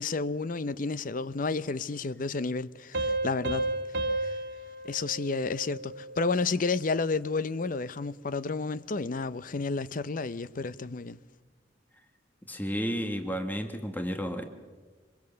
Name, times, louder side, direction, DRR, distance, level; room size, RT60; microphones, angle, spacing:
voice 1, 0.0-3.8 4.2-4.4 4.8-11.2, left 4 dB, 45° left, 0.6 m, -31 dB
Piano, 2.9-6.2, right 2 dB, 60° right, 1.8 m, -32 dB
voice 2, 12.5-14.4, equal, 10° left, 1.4 m, -32 dB
25.0 x 22.0 x 6.9 m
head